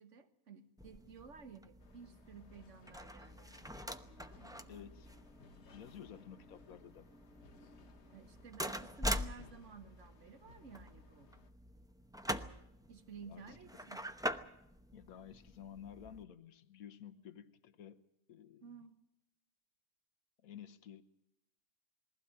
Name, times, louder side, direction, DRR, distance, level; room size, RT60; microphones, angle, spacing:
voice 1, 0.0-5.1 8.1-11.3 12.9-14.1 18.6-19.0, right 5 dB, 55° right, 9 dB, 1.7 m, -55 dB
sound 1, 0.8-16.2, equal, 5° right, 0.5 m, -44 dB
sound 2, 1.8-11.5, left 4 dB, 55° left, 1.2 m, -63 dB
voice 2, 4.7-5.1 5.7-7.1 13.3-13.9 14.9-18.0 18.3-18.8 20.4-21.0, left 9 dB, 75° left, 11 dB, 1.5 m, -53 dB
21.5 x 16.0 x 8.9 m, 0.82 s
omnidirectional pair, 1.5 m